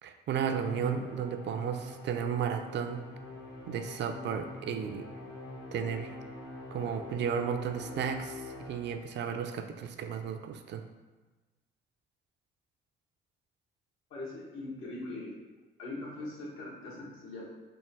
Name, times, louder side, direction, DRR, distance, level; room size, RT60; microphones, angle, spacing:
voice 1, 0.0-3.0 3.7-5.1 5.7-6.2 6.7-10.8, right 7 dB, 65° right, 7 dB, 0.4 m, -34 dB
Musical instrument, 0.6-9.2, left 2 dB, 70° left, 0.8 m, -44 dB
voice 2, 14.1-15.4 15.8-17.4, left 2 dB, 85° left, -5 dB, 1.3 m, -41 dB
3.6 x 2.4 x 4.5 m, 1.2 s
cardioid pair, 90°, 20 cm